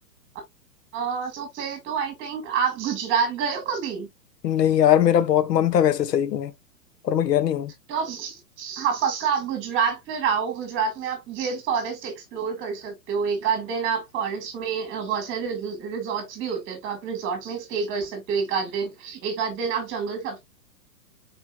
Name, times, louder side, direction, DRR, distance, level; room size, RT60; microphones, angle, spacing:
voice 1, 0.9-4.1 7.9-20.4, right 6 dB, 25° right, 2.2 m, -28 dB
voice 2, 4.4-6.5 7.0-7.7, left 10 dB, 80° left, 0.9 m, -20 dB
5.1 x 4.5 x 2.2 m
hypercardioid pair, 145°, 48 cm